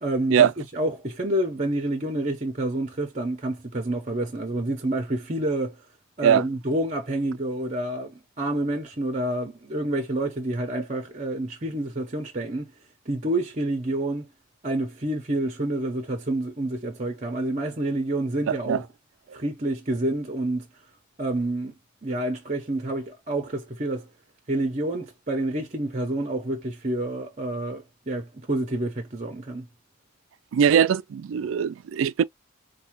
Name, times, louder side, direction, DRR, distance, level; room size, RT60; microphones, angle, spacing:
voice 1, 0.0-5.8 6.2-12.7 13.1-14.3 14.6-18.9 19.3-20.7 21.2-21.7 22.0-24.1 24.5-29.7, right 1 dB, 35° right, 0.8 m, -28 dB
voice 2, 18.5-18.8 30.5-32.2, right 8 dB, 70° right, 0.3 m, -21 dB
4.7 x 2.3 x 3.0 m
head